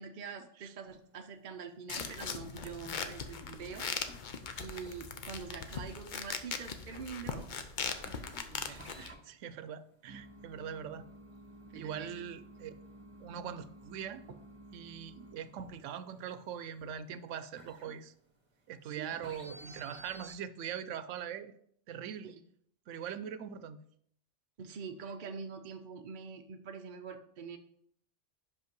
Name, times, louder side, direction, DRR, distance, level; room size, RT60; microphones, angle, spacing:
voice 1, 0.0-3.9 4.6-7.5 8.5-8.9 11.7-12.2 18.8-19.2 22.2-22.4 24.6-27.6, right 6 dB, 50° right, 5 dB, 0.6 m, -45 dB
sound 1, 0.9-1.3 1.6-18.7 19.1-20.4, right 1 dB, 30° right, 1.2 m, -54 dB
sound 2, 1.9-9.1, left 5 dB, 50° left, 0.7 m, -40 dB
voice 2, 8.6-11.1 11.7-12.7 13.2-14.2 14.7-18.1 18.7-21.5 21.9-22.3 22.9-23.8, right 8 dB, 85° right, 13 dB, 0.9 m, -42 dB
5.6 x 5.3 x 5.2 m, 0.67 s
omnidirectional pair, 1.2 m